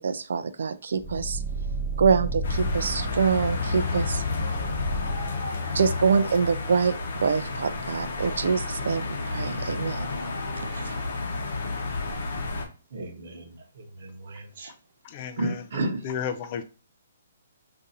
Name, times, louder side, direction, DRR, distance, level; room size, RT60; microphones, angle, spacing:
voice 1, 0.0-1.4 2.0-4.2 5.7-6.9 7.2-10.1 10.7-11.0, right 5 dB, 70° right, 0.4 m, -25 dB
sound 1, 1.0-6.0, left 1 dB, 10° right, 0.7 m, -31 dB
sound 2, 2.4-12.7, left 3 dB, 55° left, 0.8 m, -32 dB
voice 2, 12.9-14.7 15.4-16.0, right 2 dB, 50° right, 0.9 m, -33 dB
voice 3, 15.0-15.6 16.0-16.6, left 8 dB, 30° left, 0.3 m, -32 dB
2.6 x 2.5 x 4.0 m
hypercardioid pair, 170°, 0 cm